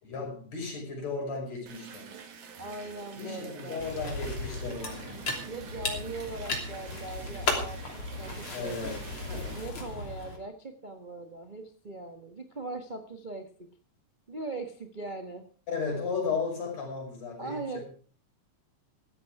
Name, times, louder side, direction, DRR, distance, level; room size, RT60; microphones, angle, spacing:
voice 1, 0.0-2.1 3.2-5.3 8.5-9.6 15.7-17.8, left 4 dB, 60° left, 2 dB, 7.0 m, -35 dB
sound 1, 1.7-9.7, right 6 dB, 75° right, 3.3 m, -47 dB
voice 2, 2.6-3.8 5.5-8.8 9.5-13.5 14.3-15.5 17.4-17.8, right 2 dB, 30° right, 5 dB, 0.8 m, -40 dB
sound 2, 3.8-10.4, left 2 dB, 45° left, 3.8 m, -35 dB
16.0 x 12.5 x 4.8 m, 0.42 s
omnidirectional pair, 3.4 m